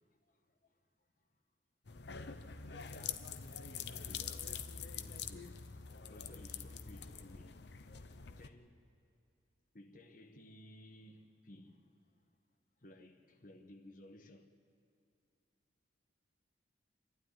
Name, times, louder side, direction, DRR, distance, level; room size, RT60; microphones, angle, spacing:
sound 1, 1.9-8.5, left 7 dB, 65° left, 0.8 m, -45 dB
voice 1, 2.7-3.3 4.1-5.5 6.1-7.6 8.4-8.8 9.7-12.1 12.8-14.5, left 1 dB, 45° left, 1.4 m, -57 dB
27.5 x 12.0 x 9.7 m
head